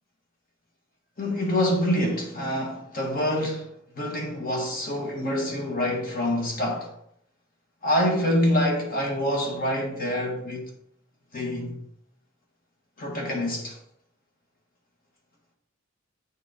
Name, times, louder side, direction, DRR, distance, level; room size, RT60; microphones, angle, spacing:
voice 1, 1.2-3.7 4.0-6.9 7.8-10.7 11.3-11.8 13.0-13.8, left 1 dB, 45° left, 1.5 m, -26 dB
8.4 x 4.0 x 3.7 m
head